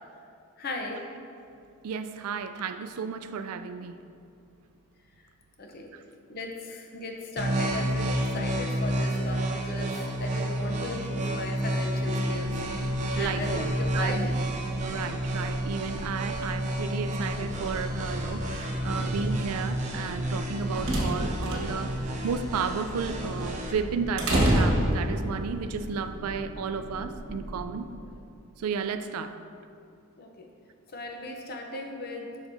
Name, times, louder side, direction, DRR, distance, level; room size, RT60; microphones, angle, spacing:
voice 1, 0.6-1.1 5.6-5.9 6.3-14.3 30.2-30.5 30.9-32.5, left 2 dB, 45° left, 2 dB, 0.7 m, -37 dB
voice 2, 1.8-4.0 13.2-14.3 14.8-27.9 28.6-29.3, right 5 dB, 85° right, 9 dB, 0.4 m, -33 dB
sound 1, 7.4-23.7, right 1 dB, 30° right, 0.5 m, -30 dB
sound 2, 12.4-27.8, equal, 10° left, 1.0 m, -42 dB
sound 3, 20.3-25.5, right 1 dB, 55° right, 1.3 m, -27 dB
7.8 x 5.9 x 2.7 m, 2.5 s
head